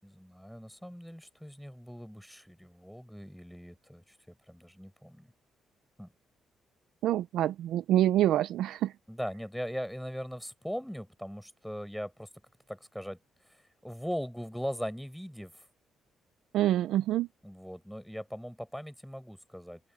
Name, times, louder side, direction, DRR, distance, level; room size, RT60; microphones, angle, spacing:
voice 1, 0.0-5.3 6.0-6.1 9.1-12.3 12.7-15.7 17.4-19.8, equal, ahead, 4.7 m, -40 dB
voice 2, 7.0-8.9 16.5-17.3, right 13 dB, 85° right, 0.5 m, -26 dB
open air
cardioid pair, 90°, 0 cm